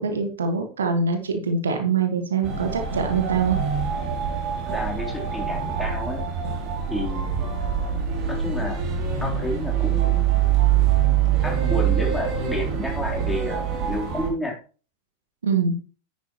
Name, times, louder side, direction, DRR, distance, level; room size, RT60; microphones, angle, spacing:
voice 1, 0.0-3.6 15.4-15.8, right 5 dB, 70° right, 5 dB, 1.6 m, -24 dB
sound 1, 2.4-14.3, right 8 dB, 40° right, 3.1 m, -24 dB
voice 2, 4.5-6.2 6.9-7.5 8.3-8.8 9.2-10.5 11.4-14.6, left 1 dB, 5° left, -2 dB, 3.6 m, -31 dB
10.0 x 9.3 x 3.0 m, 0.36 s
figure-of-eight pair, 90°, 0 cm